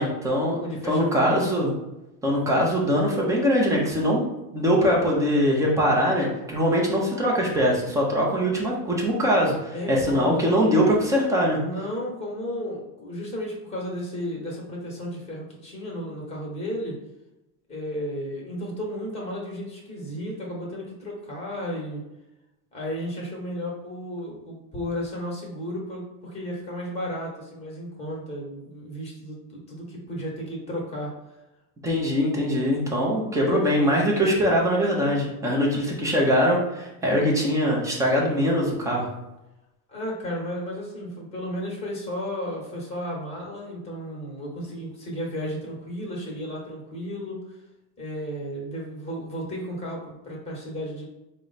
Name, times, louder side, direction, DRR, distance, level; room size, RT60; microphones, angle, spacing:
voice 1, 0.0-0.6 0.9-1.7 2.2-4.2 4.5-11.6 31.8-39.1, equal, 5° right, -3 dB, 0.5 m, -22 dB
voice 2, 0.6-1.4 9.7-10.5 11.6-17.0 17.7-22.0 22.7-31.1 33.4-33.7 39.9-47.6 48.0-51.1, equal, 15° left, -1 dB, 1.1 m, -33 dB
4.5 x 2.1 x 3.9 m, 0.96 s
supercardioid pair, 150°, 49 cm